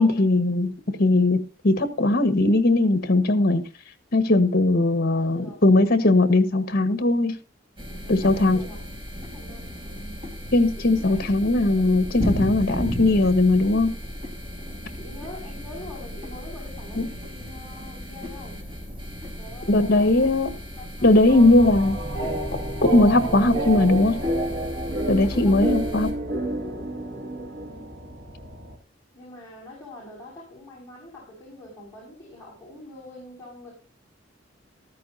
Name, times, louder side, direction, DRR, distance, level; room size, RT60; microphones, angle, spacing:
voice 1, 0.0-3.6 4.1-7.4 8.1-8.6 10.5-13.9 17.0-17.1 19.7-20.5 21.0-22.0 22.8-24.2 25.1-26.1, left 2 dB, 55° left, 1.5 m, -19 dB
voice 2, 5.1-6.1 8.0-8.9 9.3-10.2 10.8-11.2 11.5-12.2 14.7-18.6 19.4-20.3 20.8-22.2 24.9-26.2 27.6-27.9 29.1-33.7, left 1 dB, 15° left, 6.2 m, -45 dB
sound 1, 7.8-26.1, equal, 30° right, 4.4 m, -35 dB
sound 2, 21.3-28.7, right 1 dB, 60° right, 2.3 m, -30 dB
14.5 x 13.5 x 2.8 m
head